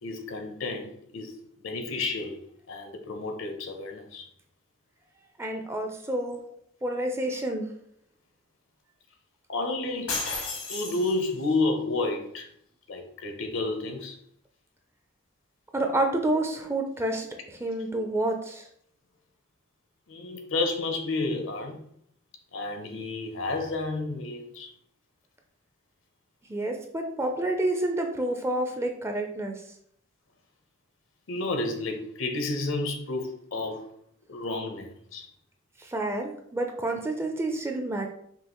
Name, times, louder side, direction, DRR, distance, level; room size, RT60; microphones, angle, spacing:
voice 1, 0.0-1.4 1.6-2.4 2.7-4.3 9.5-10.2 10.7-12.5 12.9-14.2 20.1-21.9 22.5-24.7 31.3-33.9 34.3-35.3, left 2 dB, 70° left, 0.7 m, -31 dB
voice 2, 5.4-6.4 6.8-7.7 15.7-17.3 17.6-18.6 26.5-29.6 35.8-38.1, right 1 dB, 10° right, 0.4 m, -29 dB
sound 1, 10.1-11.5, left 3 dB, 90° left, 1.2 m, -33 dB
5.4 x 2.4 x 2.9 m
head